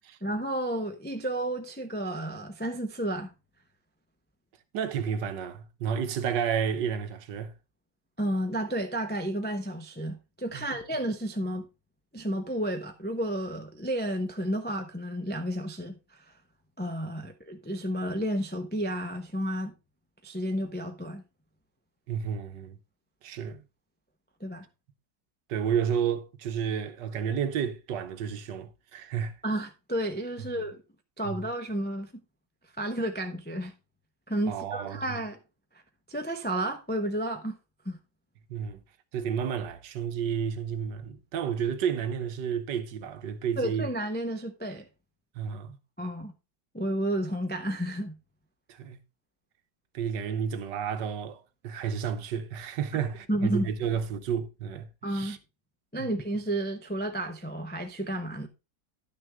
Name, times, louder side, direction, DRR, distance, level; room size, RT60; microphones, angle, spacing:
voice 1, 0.2-3.3 8.2-11.7 12.1-16.2 16.8-19.7 20.2-21.2 24.4-24.7 29.4-30.8 31.2-32.1 32.8-33.7 34.3-35.4 36.1-37.6 37.8-38.0 43.6-44.9 46.0-46.3 46.7-48.2 53.3-53.7 55.0-55.4 55.9-58.5, right 1 dB, 15° left, 0.3 m, -31 dB
voice 2, 4.7-7.5 10.5-10.7 22.1-22.8 23.2-23.6 25.5-29.3 31.2-31.4 34.4-35.2 38.5-38.8 39.1-43.9 45.3-45.8 48.7-49.0 49.9-55.4 56.0-56.1, right 7 dB, 75° right, 1.4 m, -31 dB
11.0 x 6.3 x 3.4 m
omnidirectional pair, 2.0 m